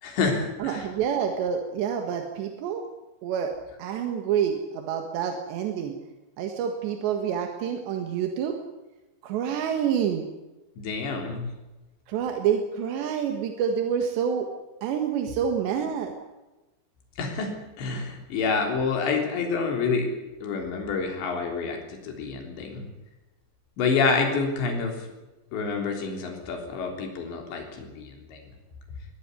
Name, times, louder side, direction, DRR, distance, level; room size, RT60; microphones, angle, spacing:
voice 1, 0.0-0.8 10.8-11.5 17.2-20.1 20.4-22.9 23.8-25.1 25.5-28.4, left 4 dB, 85° left, 3 dB, 5.9 m, -28 dB
voice 2, 0.6-2.8 3.2-3.5 3.8-6.0 6.4-8.6 9.2-10.3 12.1-14.5 14.8-16.1, right 8 dB, 85° right, 4 dB, 3.9 m, -27 dB
22.0 x 15.5 x 9.8 m, 1.1 s
omnidirectional pair, 5.0 m